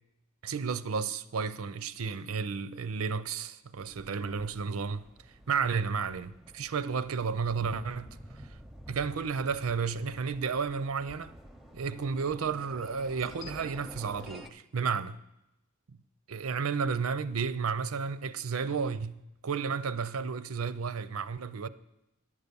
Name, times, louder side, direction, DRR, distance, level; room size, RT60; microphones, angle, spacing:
voice 1, 0.4-5.1 5.5-8.6 8.9-11.4 11.7-15.1 16.3-21.7, right 5 dB, 90° right, 0.6 m, -32 dB
sound 1, 3.7-14.5, equal, ahead, 0.6 m, -50 dB
11.0 x 8.3 x 6.9 m
head